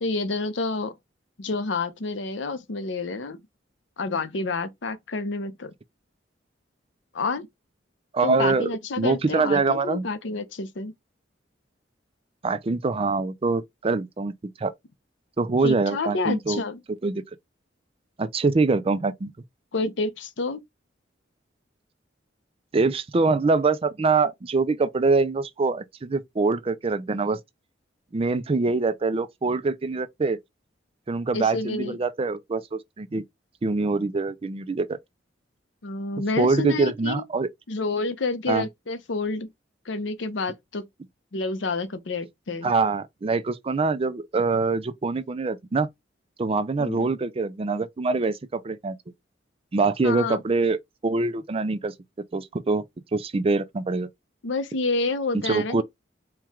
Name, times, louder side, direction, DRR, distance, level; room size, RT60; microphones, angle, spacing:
voice 1, 0.0-0.9 1.4-3.4 4.0-5.7 7.1-7.5 8.2-10.9 15.6-16.8 19.7-20.6 31.3-32.0 35.8-37.2 37.7-39.5 39.9-40.8 41.3-42.7 46.8-47.1 50.0-50.4 54.4-55.8, left 3 dB, 70° left, 0.7 m, -29 dB
voice 2, 8.1-8.7 9.0-10.1 12.4-14.3 14.6-14.7 15.4-16.6 17.0-17.2 18.2-19.3 22.7-27.4 28.1-30.4 31.1-33.2 33.6-35.0 36.4-37.5 38.5-38.7 42.6-45.9 46.4-49.0 49.7-50.8 51.0-51.9 52.3-52.8 53.1-54.1 55.4-55.8, right 3 dB, 30° right, 0.4 m, -24 dB
4.5 x 2.3 x 3.5 m
head